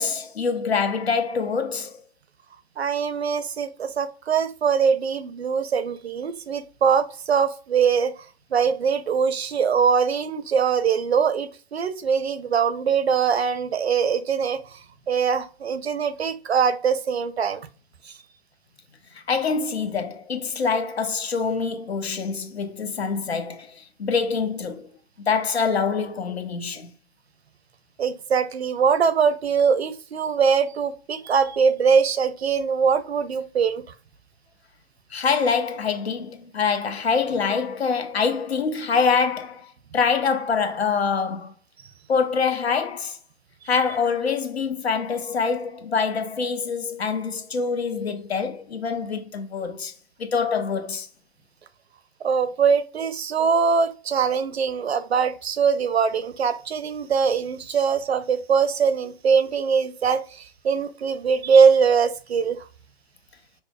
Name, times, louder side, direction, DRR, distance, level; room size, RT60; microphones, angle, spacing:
voice 1, 0.0-2.0 19.1-24.9 25.3-26.9 35.1-41.5 42.1-43.2 43.7-49.9 50.2-51.1, left 5 dB, 80° left, 0.7 m, -25 dB
voice 2, 2.8-8.1 8.5-14.8 15.1-17.6 18.0-18.1 28.0-33.8 52.2-62.6, right 6 dB, 85° right, 0.5 m, -22 dB
5.3 x 2.0 x 2.2 m
figure-of-eight pair, 130°, 31 cm